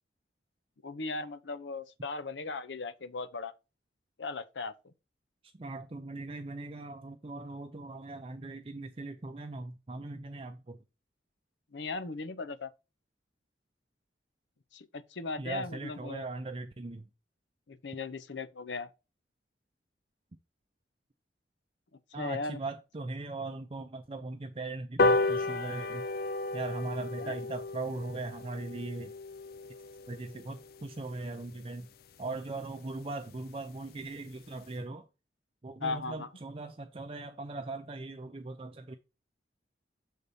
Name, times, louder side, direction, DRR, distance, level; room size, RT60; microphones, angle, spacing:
voice 1, 0.8-3.5 4.2-4.7 11.7-12.7 14.7-16.3 17.7-18.9 22.2-22.6 27.2-27.3 35.8-36.3, left 3 dB, 90° left, 0.7 m, -37 dB
voice 2, 5.4-10.8 15.4-17.1 22.1-26.0 26.5-29.1 30.1-31.9 32.2-35.1 35.6-39.0, right 2 dB, 30° right, 0.5 m, -39 dB
sound 1, 25.0-31.7 32.2-32.3 32.6-32.7 33.0-33.1 33.3-33.4 33.7-34.0 34.4-34.5, left 2 dB, 55° left, 0.4 m, -33 dB
6.6 x 4.1 x 5.0 m
head